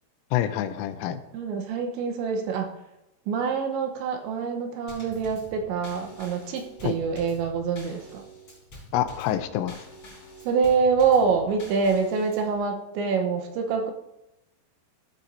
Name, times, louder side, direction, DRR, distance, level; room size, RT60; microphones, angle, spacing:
voice 1, 0.3-1.2 6.8-7.0 8.9-9.8, left 11 dB, 85° left, 10 dB, 3.2 m, -27 dB
voice 2, 1.3-2.7 3.3-8.2 10.5-13.9, right 5 dB, 80° right, 3 dB, 3.1 m, -25 dB
Drum kit / Snare drum / Bass drum, 4.9-12.6, equal, 35° left, 4.2 m, -46 dB
15.5 x 8.3 x 2.7 m, 0.89 s
omnidirectional pair, 5.6 m